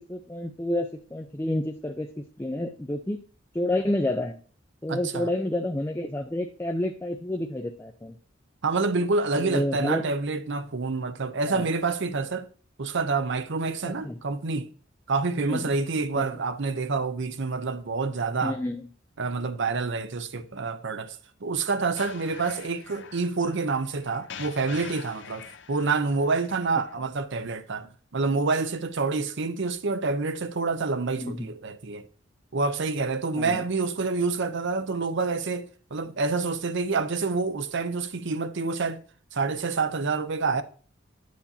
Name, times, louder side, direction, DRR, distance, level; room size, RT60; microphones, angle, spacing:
voice 1, 0.0-3.2 3.5-4.4 4.8-8.2 9.3-10.1 11.5-11.7 13.8-14.2 15.4-15.7 16.2-16.3 18.4-18.9 31.2-31.5 33.4-33.6, left 1 dB, 10° left, 0.5 m, -29 dB
voice 2, 4.9-5.3 8.6-12.5 12.8-14.7 15.1-18.6 19.2-32.1 32.5-39.0 39.3-40.6, right 4 dB, 65° right, 0.7 m, -27 dB
sound 1, 21.9-27.0, left 7 dB, 65° left, 0.7 m, -45 dB
9.4 x 8.6 x 2.8 m
head